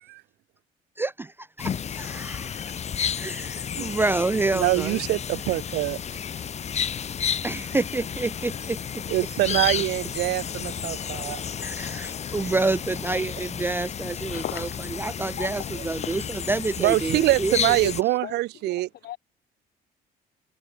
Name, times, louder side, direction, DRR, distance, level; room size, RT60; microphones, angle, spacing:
voice 1, 1.0-1.3 1.6-2.6 3.2-5.0 7.4-9.0 11.6-14.4 15.0-16.2 16.5-17.8, right 3 dB, 15° right, 0.4 m, -28 dB
sound 1, 1.6-18.0, left 8 dB, 40° left, 1.9 m, -32 dB
voice 2, 4.5-6.0 9.1-11.4 16.8-18.9, right 18 dB, 80° right, 1.9 m, -24 dB
voice 3, 14.0-15.1 15.4-16.4 16.8-17.4 17.8-19.2, left 13 dB, 65° left, 3.0 m, -39 dB
cardioid pair, 110°, 17 cm